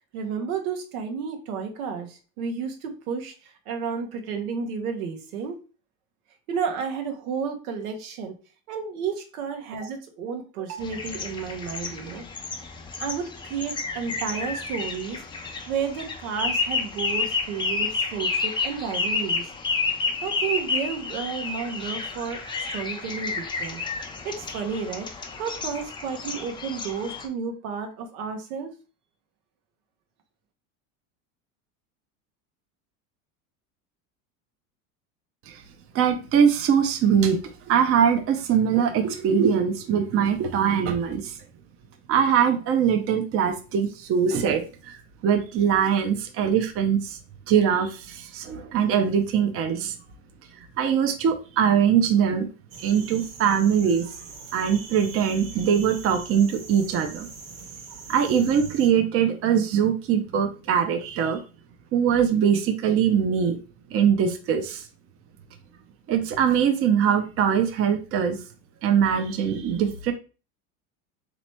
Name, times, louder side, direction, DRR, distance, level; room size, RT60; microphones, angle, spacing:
voice 1, 0.1-5.6 6.5-8.4 8.7-12.3 13.0-15.2 15.7-19.4 20.2-22.4 22.7-23.8 24.2-25.1 25.3-28.7, right 6 dB, 85° right, 5 dB, 1.1 m, -32 dB
sound 1, 10.8-27.3, left 4 dB, 10° left, 0.4 m, -30 dB
voice 2, 35.9-37.4 37.7-41.3 42.1-44.9 45.2-47.2 47.5-49.9 50.8-52.5 52.8-54.1 54.5-57.3 58.1-61.4 61.9-63.6 63.9-64.8 66.1-68.4 68.8-70.1, right 8 dB, 35° right, 6 dB, 0.6 m, -22 dB
sound 2, 52.7-58.9, right 4 dB, 70° right, 1.4 m, -43 dB
3.2 x 3.0 x 4.3 m, 0.34 s
supercardioid pair, 120°, 41 cm